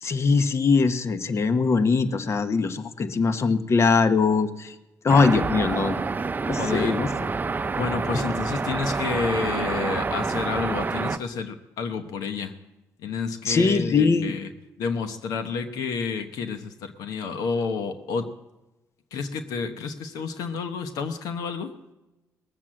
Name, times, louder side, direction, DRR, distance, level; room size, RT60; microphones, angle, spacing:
voice 1, 0.0-4.7 5.0-6.1 6.5-7.3 13.4-14.3, left 4 dB, 50° left, 10 dB, 1.1 m, -22 dB
sound 1, 5.1-11.2, right 4 dB, 30° right, 0.6 m, -28 dB
voice 2, 6.6-7.0 7.7-12.5 13.0-14.5 14.8-18.3 19.1-21.7, left 5 dB, 85° left, 8 dB, 1.0 m, -30 dB
19.5 x 7.4 x 7.6 m, 1.0 s
cardioid pair, 70°, 6 cm